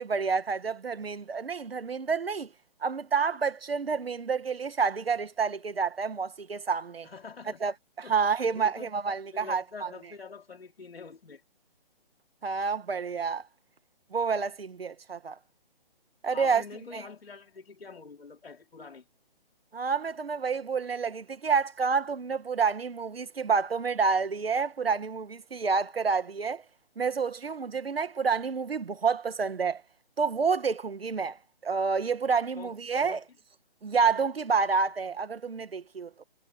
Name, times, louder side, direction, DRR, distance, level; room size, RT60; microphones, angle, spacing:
voice 1, 0.0-2.5 2.8-7.1 7.6-9.9 12.4-13.4 14.1-15.4 16.2-16.6 19.7-26.6 27.0-29.8 30.2-33.2 33.8-36.2, right 5 dB, 85° right, 2.2 m, -29 dB
voice 2, 7.0-7.6 8.0-8.2 8.5-8.9 9.3-11.4 16.3-19.1 32.6-32.8 33.1-33.2, left 4 dB, 90° left, 3.8 m, -45 dB
hypercardioid pair, 175°, 29 cm